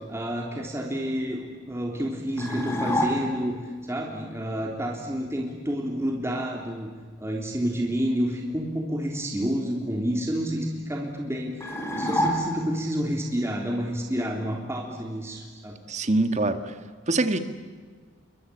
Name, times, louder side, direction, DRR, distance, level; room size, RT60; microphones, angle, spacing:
voice 1, 0.1-1.4 1.7-3.5 3.9-6.9 7.2-15.7, equal, 15° right, 0 dB, 3.4 m, -29 dB
sound 1, 2.4-3.6 11.6-12.9, equal, 15° left, 4.5 m, -27 dB
voice 2, 15.9-16.8 17.1-17.4, right 2 dB, 35° right, 8 dB, 1.7 m, -24 dB
28.5 x 24.0 x 8.6 m, 1.6 s
head